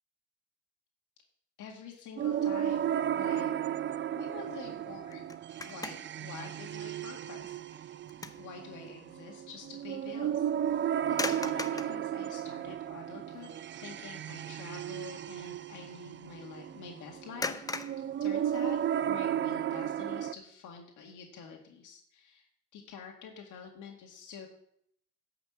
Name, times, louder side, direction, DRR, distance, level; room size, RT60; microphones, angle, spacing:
voice 1, 1.6-3.5 4.1-5.4 5.6-8.0 8.4-10.5 11.1-13.5 13.8-17.6 18.2-18.8 19.1-24.5, left 6 dB, 85° left, 1 dB, 1.9 m, -47 dB
sound 1, 2.2-20.3, right 10 dB, 40° right, 0.4 m, -34 dB
sound 2, 5.1-6.3 6.7-6.9 7.4-8.5 8.8-9.0 11.1-12.0 12.8-12.9 13.3-13.6 13.9-14.2 17.4-19.0, left 3 dB, 10° left, 0.7 m, -39 dB
10.5 x 5.9 x 7.3 m, 0.70 s
cardioid pair, 90°, 30 cm